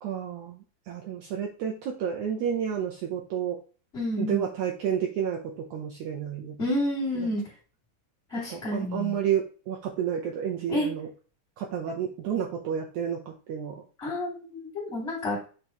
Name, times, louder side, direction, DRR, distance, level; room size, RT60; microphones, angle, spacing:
voice 1, 0.0-0.6 0.9-3.6 4.2-6.6 7.2-7.3 8.5-11.1 11.6-13.2 13.5-13.8, right 8 dB, 70° right, 0 dB, 2.0 m, -30 dB
voice 2, 3.9-4.4 6.6-7.4 8.3-9.2 10.7-10.9 14.0-15.4, left 1 dB, 20° left, -6 dB, 2.3 m, -29 dB
7.8 x 4.6 x 3.0 m, 0.37 s
omnidirectional pair, 3.9 m